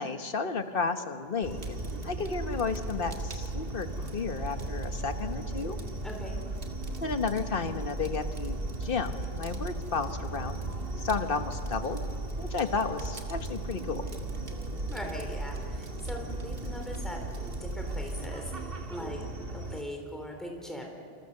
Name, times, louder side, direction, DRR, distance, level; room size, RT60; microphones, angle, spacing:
voice 1, 0.0-5.8 7.0-12.0 12.4-14.1, left 4 dB, 60° left, 8 dB, 1.5 m, -33 dB
sound 1, 1.4-19.8, right 2 dB, 65° right, 1.7 m, -39 dB
Fire, 1.4-18.3, right 1 dB, 85° right, 2.2 m, -39 dB
voice 2, 6.0-6.4 14.9-19.2 19.5-20.9, equal, ahead, 1 dB, 3.7 m, -40 dB
27.5 x 26.5 x 6.7 m, 2.4 s
omnidirectional pair, 1.1 m